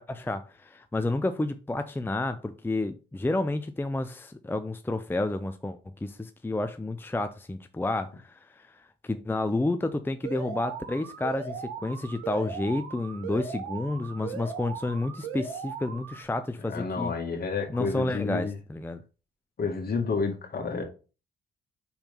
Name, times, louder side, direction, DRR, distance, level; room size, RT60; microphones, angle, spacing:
voice 1, 0.0-17.1 17.7-19.0, left 2 dB, 10° left, 0.6 m, -30 dB
Alarm, 10.2-16.2, right 6 dB, 90° right, 1.3 m, -38 dB
voice 2, 16.7-18.6 19.6-20.8, left 4 dB, 50° left, 2.1 m, -30 dB
5.5 x 4.4 x 5.4 m
supercardioid pair, 65°, 20 cm